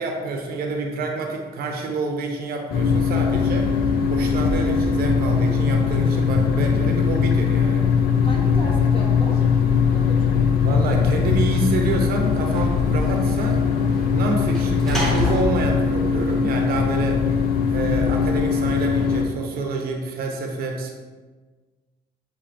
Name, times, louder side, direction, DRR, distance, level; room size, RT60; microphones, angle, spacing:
voice 1, 0.0-7.9 10.6-13.6 14.1-17.2 17.7-20.9, right 3 dB, 65° right, 2 dB, 0.8 m, -28 dB
sound 1, 2.7-19.2, left 6 dB, 65° left, 0.5 m, -20 dB
voice 2, 8.2-9.5 9.9-10.4, equal, 30° left, -2 dB, 1.1 m, -35 dB
Sliding door / Slam, 11.6-17.0, left 1 dB, ahead, 1.1 m, -30 dB
7.1 x 2.7 x 2.6 m, 1.4 s
cardioid pair, 110°, 17 cm